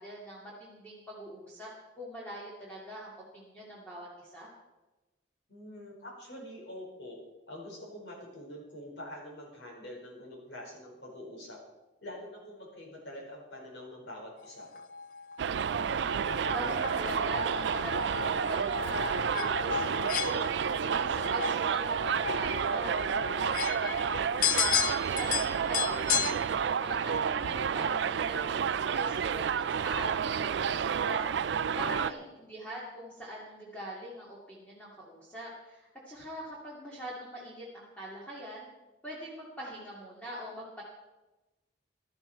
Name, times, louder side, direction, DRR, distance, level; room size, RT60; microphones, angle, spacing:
voice 1, 0.0-1.7 2.0-4.5 15.8-20.6 20.8-24.7 25.0-26.3 26.8-38.7 39.0-40.8, equal, 10° left, -6 dB, 2.3 m, -43 dB
voice 2, 5.5-7.2 7.5-11.6 12.0-14.7 25.6-26.5 31.8-32.1, left 1 dB, 65° left, -2 dB, 4.9 m, -45 dB
sound 1, 14.6-26.4, left 7 dB, 45° left, 0.7 m, -34 dB
Subway metro underground, 15.4-32.1, right 7 dB, 70° right, 0.4 m, -30 dB
16.5 x 12.0 x 4.5 m, 1.1 s
head